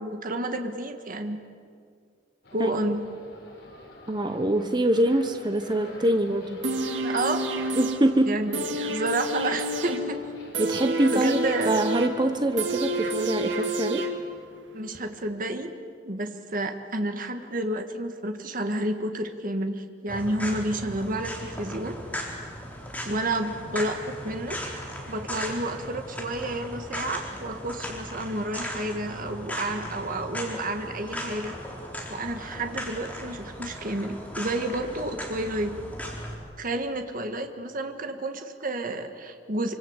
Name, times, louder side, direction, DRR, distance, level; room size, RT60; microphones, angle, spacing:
voice 1, 0.0-1.4 2.5-3.0 7.0-7.4 8.3-10.2 11.1-11.8 14.7-15.7 16.1-22.0 23.0-24.6 25.1-31.5 32.1-35.8 36.6-39.7, right 1 dB, 50° right, 6 dB, 1.9 m, -30 dB
sound 1, 2.4-13.5, left 1 dB, 70° left, 6.5 m, -48 dB
voice 2, 4.1-6.7 7.8-8.4 10.6-11.4 11.6-14.1 23.1-23.2, right 1 dB, 25° right, 7 dB, 1.0 m, -24 dB
sound 2, 6.6-14.6 15.0-15.1, right 1 dB, 80° right, 2.2 m, -30 dB
sound 3, 20.1-36.3, equal, 10° left, 4.5 m, -37 dB
25.5 x 25.5 x 8.2 m, 2.2 s
head